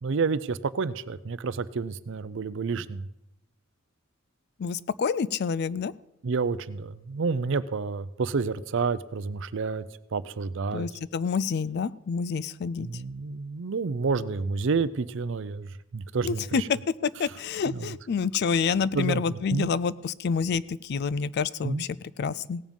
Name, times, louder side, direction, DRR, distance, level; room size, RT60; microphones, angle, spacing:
voice 1, 0.0-3.1 6.2-9.8 10.1-10.9 12.8-15.7 15.9-16.7 17.7-17.9 18.9-19.7 21.6-21.8, right 4 dB, 60° right, 15 dB, 0.5 m, -29 dB
voice 2, 4.6-5.9 10.7-12.9 16.2-16.6 17.0-22.6, left 6 dB, 50° left, 19 dB, 0.4 m, -28 dB
17.0 x 7.3 x 5.4 m, 0.85 s
head